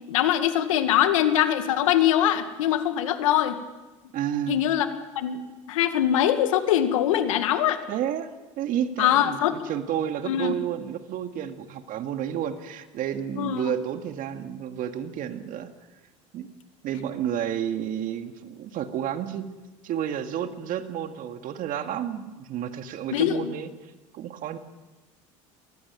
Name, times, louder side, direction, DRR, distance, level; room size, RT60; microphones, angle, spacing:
voice 1, 0.1-3.6 4.5-4.9 5.2-5.4 5.7-7.8 9.0-9.6 10.3-10.5 13.4-13.6 23.1-23.4, left 11 dB, 80° left, 9 dB, 2.0 m, -22 dB
voice 2, 4.1-4.6 7.9-8.3 8.6-15.7 16.3-16.5 16.8-19.5 19.8-23.7 24.1-24.6, right 10 dB, 55° right, 8 dB, 2.1 m, -31 dB
23.0 x 16.5 x 9.2 m, 1.2 s
hypercardioid pair, 80°, 17 cm